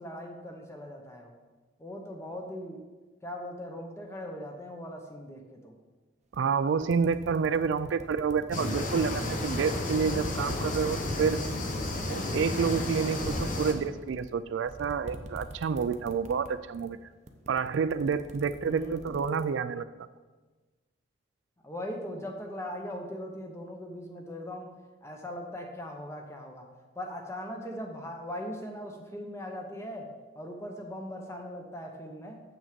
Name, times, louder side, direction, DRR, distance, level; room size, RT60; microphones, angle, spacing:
voice 1, 0.0-1.3 1.8-2.9 3.2-5.8 18.6-19.1 21.6-24.7 25.0-26.7 27.0-30.1 30.4-32.4, left 1 dB, 15° left, 2 dB, 0.9 m, -40 dB
sound 1, 6.3-6.4 6.8-9.7 10.1-16.5 16.7-17.0 17.3-19.5, right 1 dB, 35° right, 0.6 m, -44 dB
voice 2, 6.3-11.4 12.1-17.0 17.5-19.8, right 6 dB, 70° right, 13 dB, 0.3 m, -29 dB
sound 2, 8.5-13.7, left 2 dB, 40° left, 1.0 m, -32 dB
7.8 x 6.1 x 5.1 m, 1.3 s
head